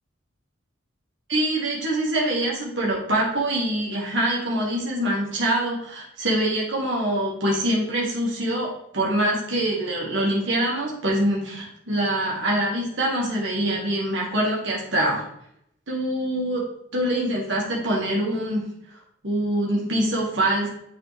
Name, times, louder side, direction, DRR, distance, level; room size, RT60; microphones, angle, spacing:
voice 1, 1.3-15.2 15.9-16.6 16.9-18.6 19.2-20.7, right 1 dB, 65° right, -4 dB, 1.9 m, -24 dB
9.1 x 4.2 x 3.3 m, 0.76 s
head